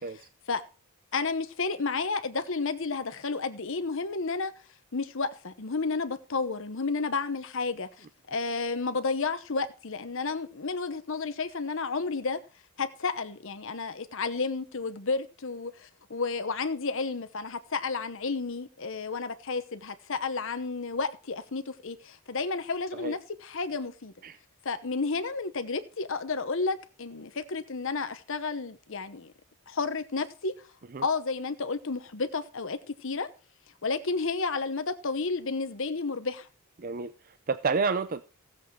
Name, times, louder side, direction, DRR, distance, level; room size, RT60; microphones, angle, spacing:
voice 1, 1.1-4.5 4.9-12.4 12.8-24.1 24.6-29.3 29.7-30.5 31.0-33.3 33.8-36.5, left 4 dB, 60° left, 0.9 m, -31 dB
voice 2, 36.8-38.2, right 4 dB, 40° right, 0.5 m, -30 dB
15.5 x 7.7 x 4.6 m
head